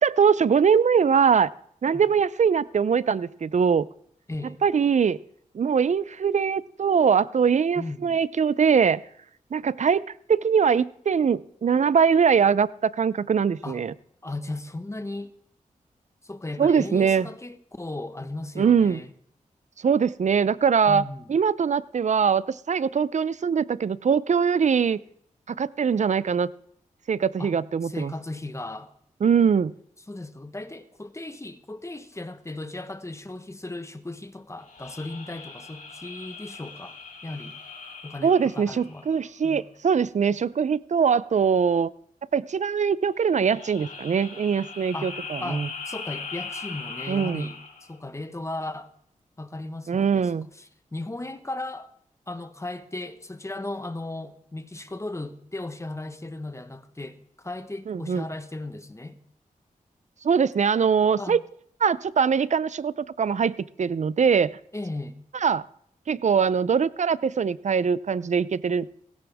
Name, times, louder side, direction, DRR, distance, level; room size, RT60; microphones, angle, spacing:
voice 1, 0.0-1.5 1.8-3.9 4.6-5.2 5.5-9.0 9.5-10.0 10.3-13.9 16.6-17.3 18.6-19.0 19.8-21.0 21.3-25.0 25.6-26.5 27.1-28.1 29.2-29.7 38.2-41.9 42.3-45.7 47.1-47.5 49.9-50.5 57.9-58.2 60.2-61.4 61.8-64.5 65.4-65.6 66.1-69.0, right 6 dB, 55° right, 0.6 m, -22 dB
voice 2, 7.7-8.2 13.6-13.8 14.2-15.3 16.2-19.1 20.9-21.4 27.4-27.5 27.8-28.9 30.1-37.0 37.2-37.6 38.0-39.1 39.4-39.6 44.9-47.6 47.9-48.9 49.4-51.9 52.3-59.2 61.2-61.4 64.7-65.2, left 2 dB, 20° left, 1.2 m, -36 dB
sound 1, 34.6-39.4 43.2-47.9, left 4 dB, 70° left, 3.2 m, -40 dB
17.0 x 16.0 x 3.6 m
cardioid pair, 65°, 14 cm